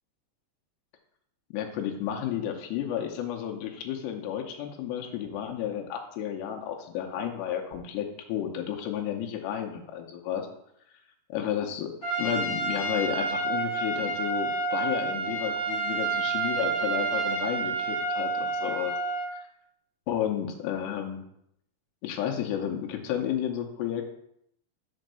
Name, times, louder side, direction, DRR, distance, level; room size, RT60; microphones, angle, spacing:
voice 1, 1.5-10.5 11.3-11.9 12.2-18.9 19.3-19.4 20.1-21.2 22.0-24.0, left 9 dB, 80° left, 3 dB, 2.9 m, -32 dB
Trumpet, 12.0-19.3, right 3 dB, 40° left, 1.6 m, -29 dB
5.4 x 5.1 x 6.4 m, 0.74 s
omnidirectional pair, 5.2 m